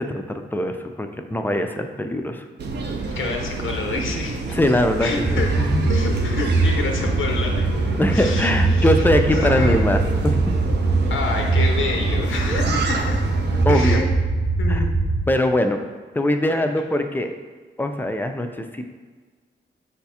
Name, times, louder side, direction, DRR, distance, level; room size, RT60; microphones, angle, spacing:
voice 1, 0.0-2.4 4.5-5.9 8.0-10.5 12.7-12.8 13.6-14.0 14.7-14.9 15.3-15.8 16.1-17.3 17.8-18.9, left 1 dB, 10° left, 6 dB, 0.3 m, -22 dB
sound 1, 2.6-13.6, right 2 dB, 60° right, 0.5 m, -28 dB
voice 2, 3.1-4.6 5.0-5.5 5.9-9.8 11.1-13.2 13.7-14.1 14.6-15.0 16.5-16.6, left 4 dB, 90° left, 2 dB, 0.6 m, -28 dB
sound 2, 5.2-15.2, right 3 dB, 10° right, 0.9 m, -22 dB
4.9 x 2.3 x 4.2 m, 1.4 s
cardioid pair, 90°, 20 cm